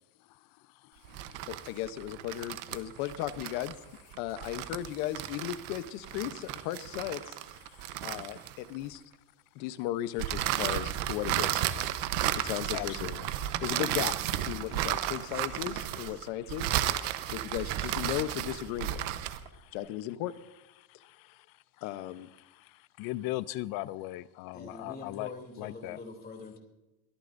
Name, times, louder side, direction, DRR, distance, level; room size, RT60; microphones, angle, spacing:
sound 1, 1.0-8.9 10.2-19.5, right 13 dB, 80° right, 1.1 m, -33 dB
voice 1, 1.5-3.7 4.2-7.3 8.0-9.0 9.5-11.6 12.4-13.1 13.6-14.1 14.5-16.7 17.3-19.0 19.7-20.4 21.8-22.3, left 13 dB, 70° left, 1.0 m, -36 dB
voice 2, 12.7-13.3 23.0-25.3 25.6-26.0, left 17 dB, 50° left, 0.5 m, -37 dB
voice 3, 24.5-26.6, left 3 dB, 20° left, 2.9 m, -44 dB
23.0 x 13.0 x 2.6 m
cardioid pair, 165°, 47 cm